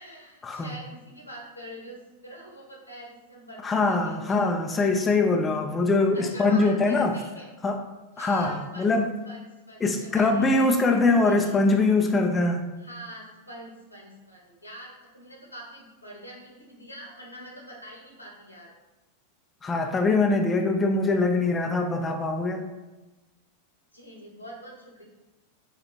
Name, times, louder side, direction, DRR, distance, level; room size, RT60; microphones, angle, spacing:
voice 1, 0.0-4.5 6.1-7.5 8.1-8.9 9.2-11.6 12.8-18.7 23.9-25.0, equal, 90° left, -2 dB, 1.1 m, -44 dB
voice 2, 3.6-7.2 7.6-7.8 8.2-9.1 9.8-12.7 19.6-22.7, left 3 dB, 15° left, 3 dB, 0.4 m, -23 dB
5.0 x 2.2 x 3.9 m, 1.1 s
figure-of-eight pair, 90°, 0 cm